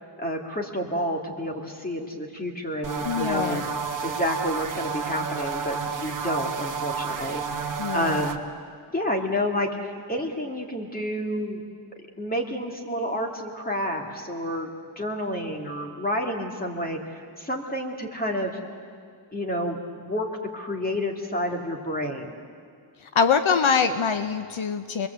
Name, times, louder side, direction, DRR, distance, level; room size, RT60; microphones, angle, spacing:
voice 1, 0.2-3.7 4.0-8.4 8.9-9.7 10.1-11.6 12.2-14.7 15.0-18.5 19.3-20.3 20.5-22.3, equal, 20° left, 1 dB, 2.4 m, -29 dB
sound 1, 2.8-8.4, right 5 dB, 40° right, 1.3 m, -31 dB
voice 2, 3.0-3.6 7.8-8.2 23.0-25.1, left 6 dB, 70° left, 9 dB, 1.0 m, -24 dB
29.5 x 21.5 x 8.2 m, 2.2 s
wide cardioid pair, 180°, 49 cm